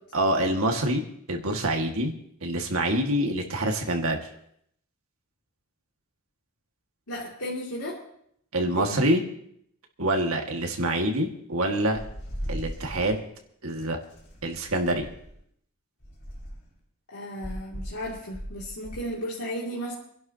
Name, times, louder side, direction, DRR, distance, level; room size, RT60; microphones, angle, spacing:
voice 1, 0.1-1.0 1.3-2.1 2.4-4.2 8.5-9.2 10.0-12.0 12.5-13.2 13.6-14.0 14.4-15.1, right 1 dB, 75° right, 2 dB, 1.9 m, -26 dB
voice 2, 7.1-8.0 8.8-9.0 17.1-19.9, equal, 85° left, -5 dB, 2.7 m, -34 dB
sound 1, 11.9-13.2 14.1-15.4 16.0-16.7 17.4-19.0, equal, 50° left, 5.2 m, -38 dB
28.0 x 11.5 x 2.9 m, 0.70 s
head